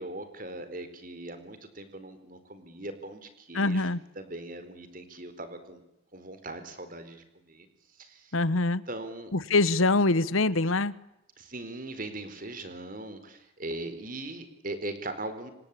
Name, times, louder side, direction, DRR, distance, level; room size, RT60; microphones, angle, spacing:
voice 1, 0.0-5.8 6.1-7.7 8.0-8.3 8.9-9.3 11.4-15.5, right 2 dB, 40° right, 4.3 m, -40 dB
voice 2, 3.5-4.0 8.3-8.9 9.3-11.0, left 2 dB, 85° left, 1.2 m, -24 dB
27.5 x 24.5 x 8.6 m
head